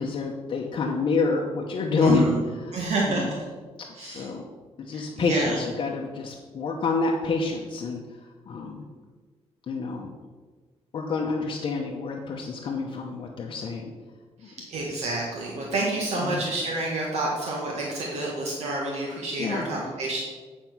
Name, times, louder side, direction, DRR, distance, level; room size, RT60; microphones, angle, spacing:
voice 1, 0.0-3.3 4.0-4.5 4.8-8.0 8.5-8.8 9.7-10.1 10.9-13.9 14.4-14.5 16.1-16.5 19.4-19.7, left 3 dB, 45° left, 0 dB, 0.8 m, -27 dB
voice 2, 2.0-2.3 2.7-3.3 4.0-4.2 4.9-5.6 14.7-20.2, right 2 dB, 70° right, -2 dB, 1.6 m, -29 dB
9.0 x 4.5 x 6.0 m, 1.4 s
cardioid pair, 165°, 11 cm